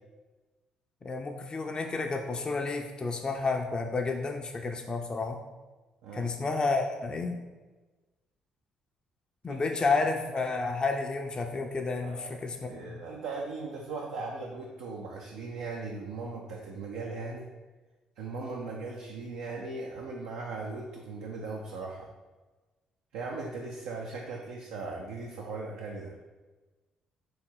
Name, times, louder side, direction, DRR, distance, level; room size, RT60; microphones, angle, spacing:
voice 1, 1.0-5.4 6.1-7.4 9.4-13.0, left 3 dB, 30° left, 3 dB, 0.5 m, -31 dB
voice 2, 9.5-9.8 12.0-17.5 18.2-22.1 23.1-26.1, right 3 dB, 70° right, -1 dB, 0.5 m, -38 dB
3.5 x 3.1 x 4.4 m, 1.2 s
hypercardioid pair, 45°, 3 cm